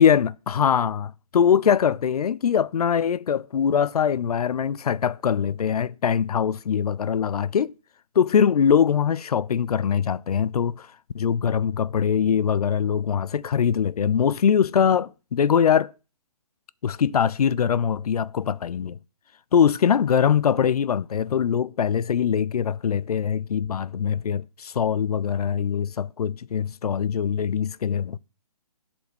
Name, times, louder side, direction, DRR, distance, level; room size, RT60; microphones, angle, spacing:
voice 1, 0.0-7.7 8.2-10.9 11.1-15.9 16.8-19.0 19.5-28.2, left 7 dB, 75° left, 0.5 m, -22 dB
8.1 x 4.4 x 6.1 m
hypercardioid pair, 165°, 19 cm